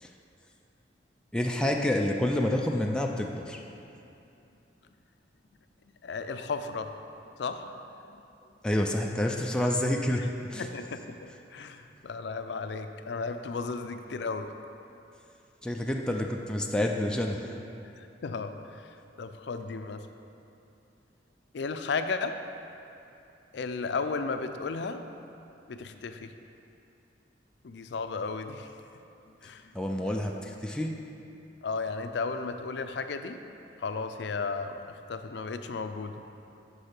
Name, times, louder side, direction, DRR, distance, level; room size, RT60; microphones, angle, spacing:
voice 1, 1.3-3.6 8.6-10.7 15.6-17.5 29.7-31.0, left 1 dB, 5° left, 0 dB, 0.4 m, -28 dB
voice 2, 6.0-6.9 7.4-7.8 10.1-10.2 10.6-14.5 18.0-18.8 19.2-20.1 21.5-22.4 23.5-25.0 25.7-26.3 27.6-28.7 29.4-29.7 31.6-33.4 33.8-36.2, left 4 dB, 70° left, 8 dB, 0.4 m, -34 dB
6.5 x 5.4 x 5.9 m, 2.7 s
head